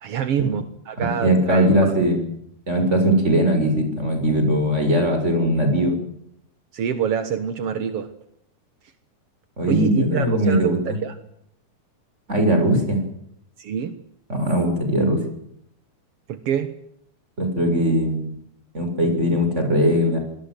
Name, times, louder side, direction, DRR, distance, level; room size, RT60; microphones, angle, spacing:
voice 1, 0.0-1.9 6.7-8.1 9.7-11.2 13.6-13.9 16.3-16.7, right 8 dB, 60° right, 10 dB, 1.6 m, -26 dB
voice 2, 1.0-2.3 2.7-5.9 9.6-10.8 12.3-13.0 14.3-15.2 17.4-18.3 18.7-20.2, equal, 15° right, 5 dB, 6.8 m, -20 dB
26.5 x 20.0 x 7.8 m, 0.72 s
omnidirectional pair, 4.6 m